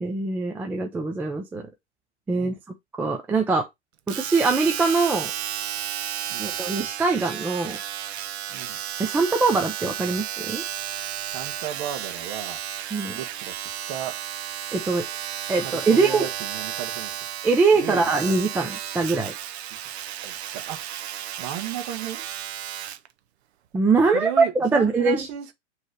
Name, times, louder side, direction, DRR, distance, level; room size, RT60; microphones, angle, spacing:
voice 1, 0.0-1.7 2.3-2.5 3.0-3.7 4.1-5.3 6.4-7.8 9.0-10.6 12.9-13.2 14.7-15.0 15.5-16.3 17.4-19.3 23.7-25.3, right 4 dB, 5° right, 0.4 m, -22 dB
Domestic sounds home sounds, 4.1-23.1 23.8-23.9, right 11 dB, 65° right, 0.7 m, -33 dB
voice 2, 11.3-12.6 13.2-13.5 13.9-14.2 15.6-17.1 17.7-18.2 20.2-20.8 21.4-22.2 24.1-25.5, right 10 dB, 35° right, 1.3 m, -34 dB
6.4 x 3.2 x 4.6 m
hypercardioid pair, 120°, 35 cm